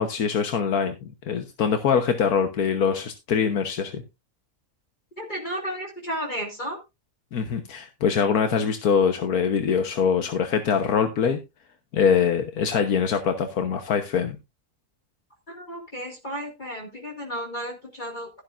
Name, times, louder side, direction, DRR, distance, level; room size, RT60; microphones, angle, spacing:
voice 1, 0.0-4.0 7.3-11.4 11.9-14.4, left 6 dB, 85° left, 6 dB, 1.6 m, -23 dB
voice 2, 5.2-6.8 15.5-18.3, equal, 30° left, 1 dB, 2.2 m, -33 dB
12.5 x 11.5 x 2.5 m, 0.25 s
omnidirectional pair, 1.5 m